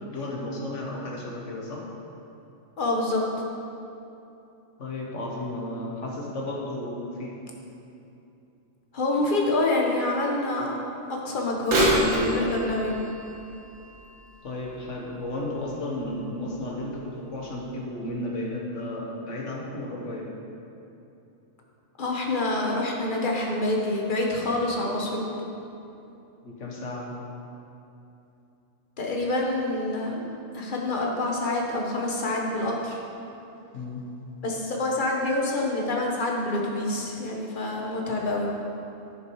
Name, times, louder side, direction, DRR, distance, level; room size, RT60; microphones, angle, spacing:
voice 1, 0.0-1.9 4.8-7.4 14.4-20.3 26.4-27.1 33.7-34.0, left 1 dB, 70° left, -2 dB, 1.7 m, -33 dB
voice 2, 2.8-3.3 8.9-10.7 11.1-13.0 22.0-25.2 29.0-30.2 30.5-33.0 34.4-38.5, left 2 dB, 40° left, -1 dB, 1.4 m, -27 dB
Bird vocalization bird call bird song / Telephone, 11.6-15.4 16.0-16.1 16.9-17.0 17.7-17.8, equal, 80° right, 2.0 m, -28 dB
11.0 x 6.5 x 4.7 m, 2.8 s
omnidirectional pair, 1.3 m